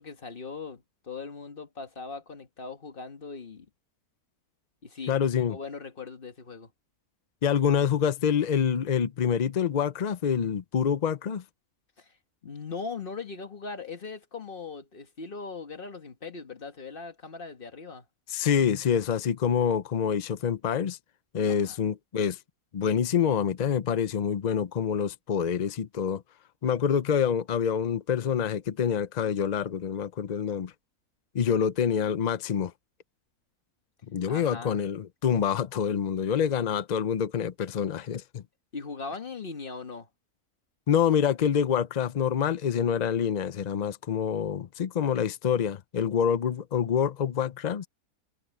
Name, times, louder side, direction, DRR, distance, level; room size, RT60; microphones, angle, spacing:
voice 1, 0.0-3.7 4.8-6.7 12.0-12.1 12.4-18.0 21.5-21.8 34.3-34.8 38.7-40.1, left 4 dB, 35° left, 1.6 m, -40 dB
voice 2, 5.1-5.6 7.4-11.4 18.3-21.0 21.3-22.4 22.7-26.2 26.6-30.7 31.3-32.7 34.1-38.4 40.9-47.9, left 7 dB, 70° left, 0.4 m, -26 dB
omnidirectional pair, 1.6 m